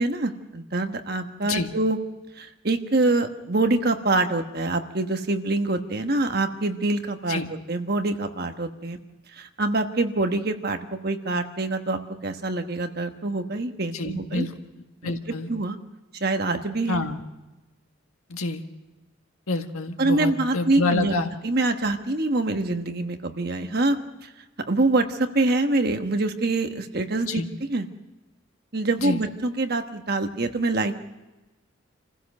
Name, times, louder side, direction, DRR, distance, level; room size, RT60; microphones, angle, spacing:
voice 1, 0.0-2.0 2.4-7.4 7.7-9.0 9.3-14.5 15.0-15.1 15.5-15.8 16.2-17.1 20.0-21.1 21.4-24.3 24.7-27.4 27.7-27.9 28.7-31.0, right 2 dB, 45° right, 6 dB, 1.3 m, -25 dB
voice 2, 13.9-14.5 15.0-15.5 16.9-17.2 18.3-18.6 19.5-21.3 27.2-27.5 29.0-29.2, left 2 dB, 90° left, 5 dB, 1.7 m, -27 dB
27.0 x 15.5 x 6.5 m, 1.1 s
head